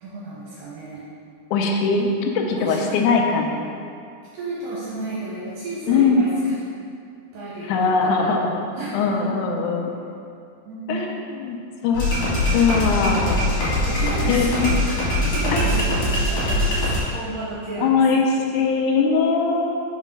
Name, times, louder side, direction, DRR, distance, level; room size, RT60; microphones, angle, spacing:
voice 1, 0.0-1.0 2.5-3.0 4.3-6.6 7.3-8.4 8.8-9.3 10.7-11.2 13.7-15.0 15.3-16.9 17.1-18.0, right 2 dB, 80° right, -7 dB, 2.4 m, -32 dB
voice 2, 1.5-3.7 5.9-6.2 7.7-8.6 8.9-9.9 10.9-11.6 11.8-12.1 12.5-13.4 14.3-14.7 15.5-15.6 17.8-19.7, left 5 dB, 80° left, 1 dB, 1.8 m, -21 dB
sound 1, 11.9-17.0, left 1 dB, 55° left, 2.8 m, -22 dB
5.4 x 4.0 x 5.2 m, 2.4 s
omnidirectional pair, 4.1 m